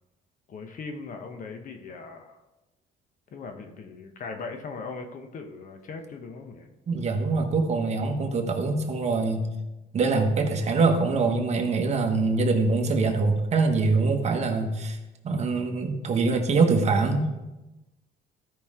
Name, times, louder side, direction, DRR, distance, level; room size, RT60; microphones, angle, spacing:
voice 1, 0.5-2.4 3.3-6.7, left 4 dB, 50° left, 5 dB, 1.1 m, -39 dB
voice 2, 6.9-9.5 9.9-15.0 15.2-17.4, right 3 dB, 40° right, 3 dB, 1.3 m, -24 dB
13.0 x 5.4 x 3.7 m, 1.1 s
cardioid pair, 110°, 17 cm